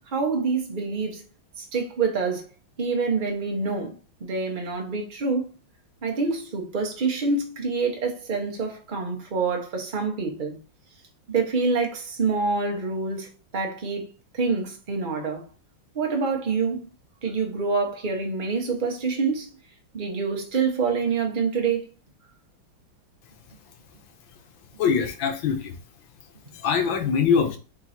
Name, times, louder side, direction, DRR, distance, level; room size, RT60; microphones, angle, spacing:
voice 1, 0.1-1.2 1.6-2.5 2.8-3.9 4.2-5.5 6.0-10.6 11.3-14.1 14.3-15.4 15.9-16.9 17.2-19.5 19.9-21.9, right 4 dB, 35° right, 0.8 m, -26 dB
voice 2, 24.8-25.7 26.6-27.6, left 6 dB, 70° left, 1.5 m, -22 dB
3.8 x 3.1 x 4.2 m
omnidirectional pair, 2.3 m